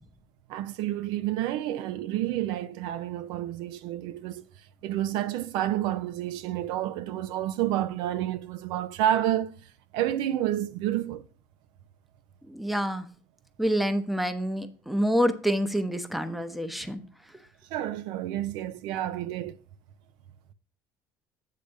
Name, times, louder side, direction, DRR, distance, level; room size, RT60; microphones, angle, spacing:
voice 1, 0.5-4.5 4.8-9.5 9.9-11.2 17.7-19.6, right 12 dB, 75° right, 0.5 m, -29 dB
voice 2, 12.5-13.0 13.6-17.0, equal, ahead, 0.7 m, -27 dB
8.4 x 3.4 x 6.3 m
cardioid pair, 135°, 8 cm